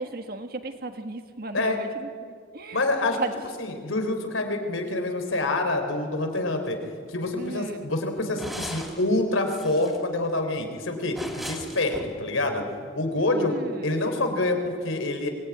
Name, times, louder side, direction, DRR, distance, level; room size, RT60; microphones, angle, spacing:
voice 1, 0.0-2.8 3.2-3.3 7.3-7.9 13.2-14.2, right 3 dB, 50° right, 7 dB, 1.6 m, -36 dB
voice 2, 2.7-3.2 3.6-6.8 7.1-12.6 12.9-13.6 13.8-15.3, left 2 dB, 85° left, 5 dB, 3.7 m, -26 dB
sound 1, 6.3-6.4 6.7-6.8 7.3-7.4 8.4-9.0 9.3-10.0 11.1-12.2, equal, ahead, 3.1 m, -38 dB
25.0 x 19.0 x 9.7 m, 2.1 s
head